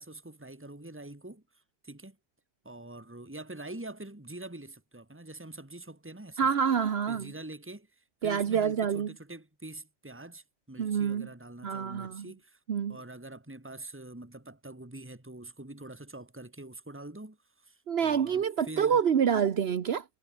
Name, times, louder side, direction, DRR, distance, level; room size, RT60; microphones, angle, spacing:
voice 1, 0.0-2.2 2.6-6.5 7.1-12.6 12.9-19.0, right 2 dB, 10° right, 2.3 m, -45 dB
voice 2, 6.4-7.3 8.2-9.1 10.8-11.3 11.6-12.3 12.7-13.0 17.9-20.0, right 7 dB, 70° right, 1.2 m, -27 dB
omnidirectional pair, 1.1 m